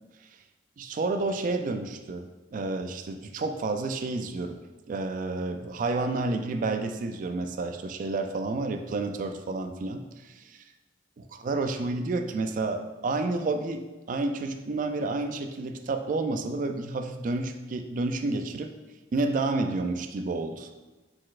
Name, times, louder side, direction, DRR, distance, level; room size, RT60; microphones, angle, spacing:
voice 1, 0.8-4.6 4.9-10.6 11.2-13.8 14.1-18.7 19.1-20.7, right 3 dB, 45° right, 7 dB, 0.3 m, -30 dB
4.2 x 4.1 x 2.4 m, 1.2 s
head